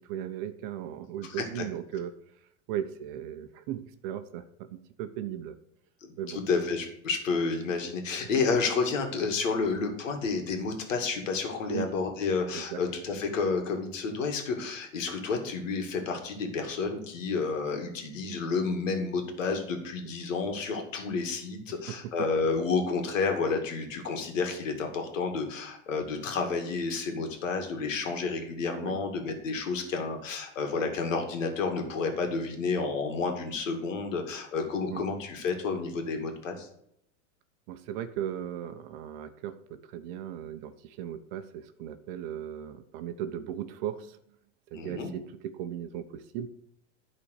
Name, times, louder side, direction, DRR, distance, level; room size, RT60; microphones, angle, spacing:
voice 1, 0.0-2.1 2.7-5.6 6.2-6.4 11.7-11.9 12.5-12.8 21.9-22.1 28.7-29.0 34.9-35.1 37.7-44.2 44.7-46.5, right 10 dB, 45° right, 9 dB, 0.9 m, -37 dB
voice 2, 1.2-1.7 6.0-36.7 44.7-45.1, left 4 dB, 90° left, 4 dB, 2.4 m, -30 dB
11.5 x 4.3 x 6.6 m, 0.73 s
supercardioid pair, 140°, 37 cm